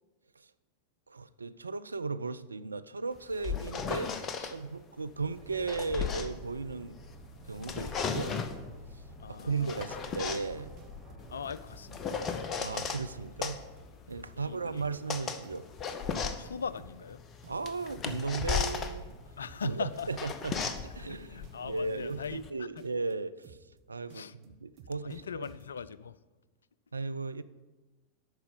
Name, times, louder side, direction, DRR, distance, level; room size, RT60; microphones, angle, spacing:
voice 1, 1.1-7.0 7.5-8.4 9.3-10.7 12.6-13.6 14.1-15.7 16.3-16.4 17.5-19.1 19.6-23.6 23.9-25.5 26.9-27.4, right 4 dB, 80° right, 0.3 m, -36 dB
sound 1, 3.1-4.5 5.3-7.1 7.5-8.6 9.4-13.0 13.4-22.5, left 6 dB, 30° left, 0.7 m, -36 dB
Aircraft, 5.2-13.7, equal, 10° right, 2.4 m, -50 dB
voice 2, 9.2-9.9 11.3-12.2 14.3-14.9 16.4-17.2 19.4-20.1 21.0-22.8 24.1-24.3 25.0-26.2, left 6 dB, 70° left, 0.3 m, -41 dB
sound 2, 9.5-10.4 10.8-11.8 12.1-12.5 12.8-13.1 13.4-15.8 16.1-17.1 17.4-17.8 18.1-18.4 18.8-21.1 21.4-22.4 22.8-23.1 23.4-23.8 24.1-25.9, right 6 dB, 40° right, 1.0 m, -55 dB
8.9 x 5.7 x 6.7 m
figure-of-eight pair, 90°, 0 cm